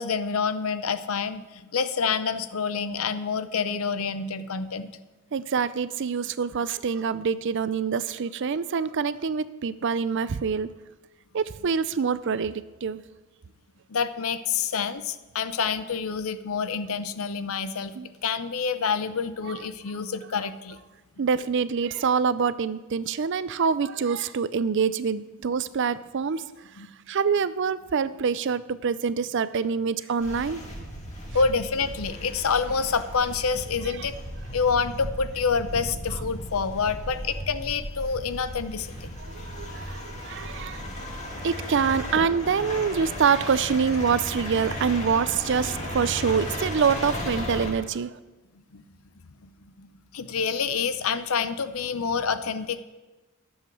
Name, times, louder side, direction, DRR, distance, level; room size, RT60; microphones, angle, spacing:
voice 1, 0.0-4.9 13.9-17.9 18.2-20.8 26.8-26.9 31.0-34.2 34.5-39.1 40.8-41.1 48.7-48.8 49.4-49.5 49.8-52.8, left 5 dB, 85° left, 12 dB, 0.7 m, -27 dB
voice 2, 5.3-10.7 11.3-13.0 17.9-18.1 19.5-19.6 21.2-30.6 33.8-34.1 39.3-40.8 41.4-48.1, right 6 dB, 60° right, 15 dB, 0.5 m, -26 dB
sound 1, 30.2-47.7, equal, 35° left, 2.2 m, -35 dB
11.5 x 7.3 x 6.1 m, 1.2 s
head